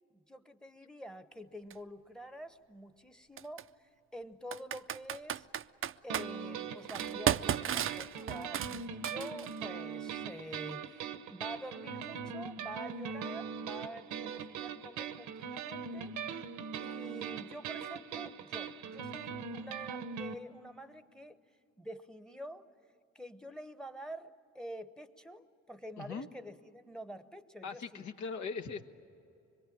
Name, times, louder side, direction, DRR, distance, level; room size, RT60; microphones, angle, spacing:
voice 1, 0.1-5.5 6.0-16.1 16.8-21.4 21.8-22.7 23.1-28.1, equal, ahead, 11 dB, 1.0 m, -47 dB
Computer keyboard, 1.7-1.8 3.4-3.6 4.5-6.3 6.9-9.6, right 10 dB, 45° right, 0.5 m, -34 dB
sound 1, 6.1-20.3, right 6 dB, 85° right, 1.0 m, -41 dB
voice 2, 26.0-26.3 27.6-28.8, left 5 dB, 70° left, 6 dB, 1.4 m, -40 dB
25.0 x 22.5 x 8.7 m, 2.7 s
cardioid pair, 90°, 30 cm